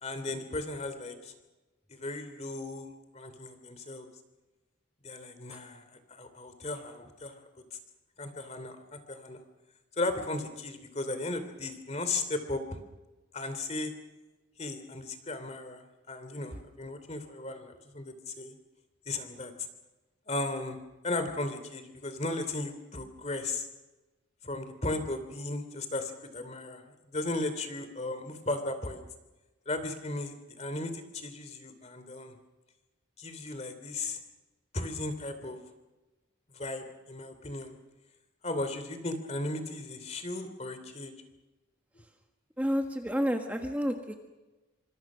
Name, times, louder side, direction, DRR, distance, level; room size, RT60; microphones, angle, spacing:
voice 1, 0.0-1.3 1.9-4.1 5.0-7.3 8.2-9.4 10.0-12.8 13.3-13.9 14.6-18.5 19.1-19.5 20.3-20.8 21.0-23.7 24.4-26.8 27.1-29.0 29.7-32.3 33.2-34.2 34.7-35.6 36.5-37.8 38.4-41.1, left 2 dB, 35° left, 9 dB, 2.9 m, -36 dB
voice 2, 42.6-44.2, equal, 10° right, 4 dB, 1.5 m, -30 dB
26.5 x 25.5 x 6.2 m, 1.1 s
head